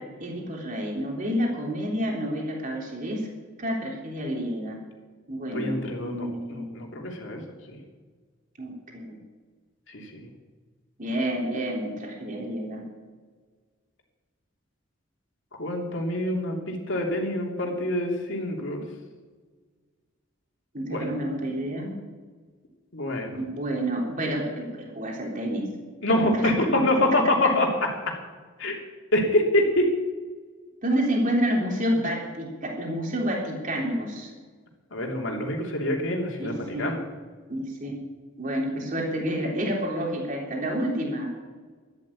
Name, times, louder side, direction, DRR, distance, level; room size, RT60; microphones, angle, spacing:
voice 1, 0.2-3.3 3.6-4.8 5.3-6.9 8.6-9.2 11.0-12.8 20.7-21.9 23.3-25.7 26.3-26.5 26.9-27.0 27.4-27.5 30.8-34.3 36.4-36.9 37.5-38.0 38.4-41.3, equal, 40° right, -1 dB, 3.4 m, -29 dB
voice 2, 5.5-7.4 7.7-7.8 9.9-10.3 15.6-18.8 20.9-21.0 22.9-23.3 26.0-27.7 28.1-28.2 28.6-28.8 29.1-29.9 34.9-37.0, left 1 dB, 65° left, 0 dB, 3.1 m, -26 dB
12.0 x 11.5 x 8.6 m, 1.5 s
head